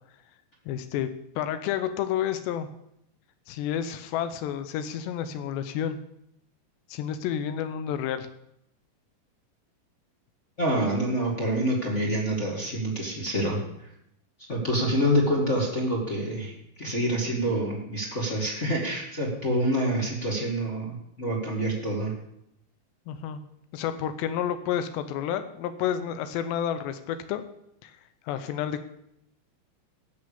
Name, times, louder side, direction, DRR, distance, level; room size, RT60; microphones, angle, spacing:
voice 1, 0.7-1.1 1.4-2.7 3.5-6.0 6.9-8.3 23.1-23.4 23.7-27.4 27.8-28.0 28.3-28.8, left 9 dB, 85° left, 11 dB, 3.0 m, -30 dB
voice 2, 10.6-13.6 14.5-16.5 16.8-22.1, right 1 dB, 30° left, -3 dB, 1.4 m, -27 dB
16.5 x 6.6 x 7.0 m, 0.78 s
omnidirectional pair, 4.9 m